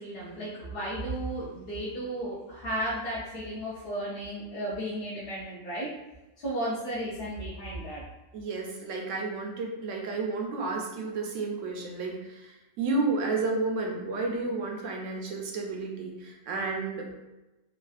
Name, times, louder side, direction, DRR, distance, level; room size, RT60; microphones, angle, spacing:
voice 1, 0.0-5.9 6.4-8.0, right 1 dB, 55° left, -10 dB, 0.9 m, -34 dB
voice 2, 8.3-17.0, right 3 dB, 75° right, 0 dB, 1.0 m, -31 dB
3.4 x 2.3 x 2.3 m, 1.0 s
omnidirectional pair, 1.3 m